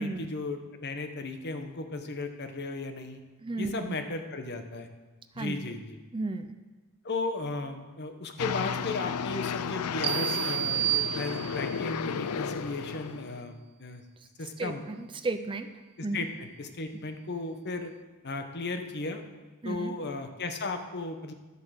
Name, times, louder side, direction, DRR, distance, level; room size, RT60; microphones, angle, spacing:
voice 1, 0.0-3.2 3.6-4.9 5.3-6.0 7.0-14.0 14.4-14.8 16.0-17.9 18.2-19.2 19.6-21.3, left 3 dB, 50° left, 6 dB, 1.1 m, -35 dB
voice 2, 3.4-4.0 5.4-5.6 6.1-6.6 14.6-15.7 16.0-16.2 19.6-19.9, right 2 dB, 25° right, 9 dB, 0.5 m, -33 dB
sound 1, 8.4-13.4, left 6 dB, 80° left, 0.5 m, -33 dB
sound 2, 10.0-11.8, right 15 dB, 80° right, 0.4 m, -30 dB
12.5 x 8.2 x 6.4 m, 1.3 s
head